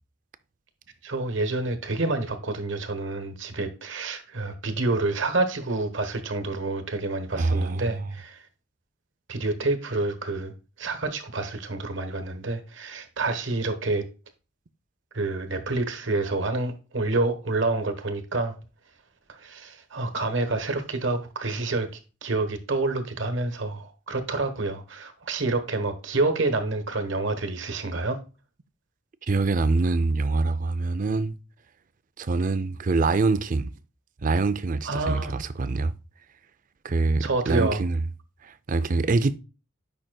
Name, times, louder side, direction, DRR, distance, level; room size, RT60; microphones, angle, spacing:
voice 1, 1.0-8.4 9.3-10.5 10.8-14.1 15.1-18.6 19.3-21.9 22.2-28.2 34.8-35.3 37.2-37.8, right 2 dB, 65° right, 1.2 m, -28 dB
voice 2, 7.3-8.1 29.3-31.3 32.2-33.7 34.2-35.9 36.8-38.0 38.4-39.4, right 3 dB, 40° right, 0.4 m, -24 dB
8.8 x 5.7 x 2.3 m
head